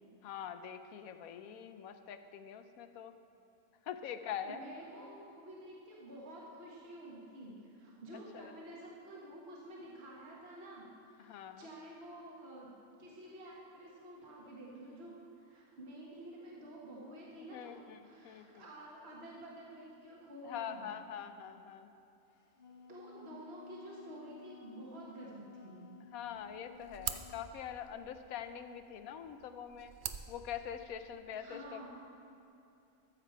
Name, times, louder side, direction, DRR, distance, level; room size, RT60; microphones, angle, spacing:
voice 1, 0.2-3.1 3.9-4.6 8.3-8.5 11.2-11.7 17.5-18.6 20.4-21.9 26.1-29.9 30.3-31.9, left 9 dB, 85° left, 9 dB, 1.1 m, -44 dB
voice 2, 4.4-12.7 13.0-17.7 18.0-20.9 22.9-25.9 31.3-31.9, right 1 dB, 45° right, -4 dB, 1.8 m, -50 dB
Wind instrument woodwind instrument, 22.3-27.5, left 6 dB, 50° left, 1.0 m, -56 dB
sound 1, 26.3-31.3, right 8 dB, 70° right, 0.4 m, -46 dB
14.0 x 7.5 x 4.6 m, 2.8 s
omnidirectional pair, 1.5 m